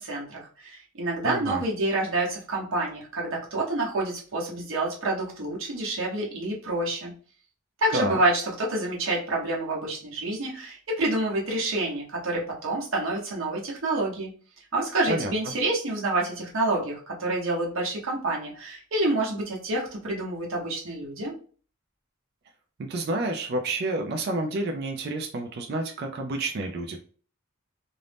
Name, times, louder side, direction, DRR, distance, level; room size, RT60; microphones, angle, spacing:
voice 1, 0.0-7.1 7.8-14.3 14.7-21.3, right 2 dB, 70° right, -2 dB, 0.9 m, -28 dB
voice 2, 1.2-1.6 7.9-8.2 15.1-15.3 22.9-27.0, right 2 dB, 50° right, 3 dB, 0.4 m, -29 dB
2.6 x 2.0 x 3.2 m, 0.42 s
head